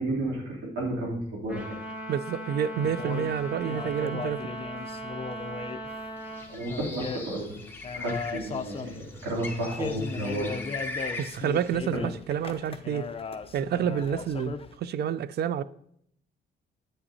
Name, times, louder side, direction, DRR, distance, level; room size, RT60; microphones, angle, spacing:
voice 1, 0.0-1.7 6.5-7.5 7.9-10.5 10.8-11.0, right 1 dB, 85° right, 3.1 m, -32 dB
Trumpet, 1.5-6.5, right 1 dB, 5° right, 1.5 m, -38 dB
voice 2, 2.1-4.5 11.2-13.1 13.5-15.6, right 8 dB, 55° right, 0.4 m, -29 dB
sound 1, 2.8-14.8, left 5 dB, 30° left, 0.6 m, -38 dB
Bird, 6.2-11.7, left 3 dB, 10° left, 1.3 m, -40 dB
9.9 x 8.5 x 2.8 m
cardioid pair, 90°, 20 cm